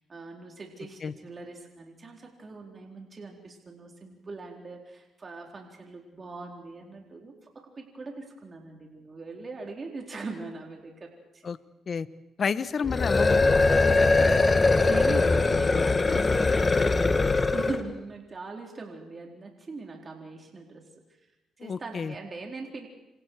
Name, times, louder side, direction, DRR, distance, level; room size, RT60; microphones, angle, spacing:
voice 1, 0.0-7.5 7.8-11.5 14.1-20.9 21.6-22.9, right 3 dB, 30° right, 1 dB, 4.2 m, -41 dB
voice 2, 12.4-13.5 21.6-22.1, left 6 dB, 45° left, 13 dB, 1.1 m, -30 dB
sound 1, 12.8-17.9, left 3 dB, 25° left, 1.7 m, -21 dB
27.5 x 27.0 x 4.8 m, 0.99 s
cardioid pair, 95°, 0 cm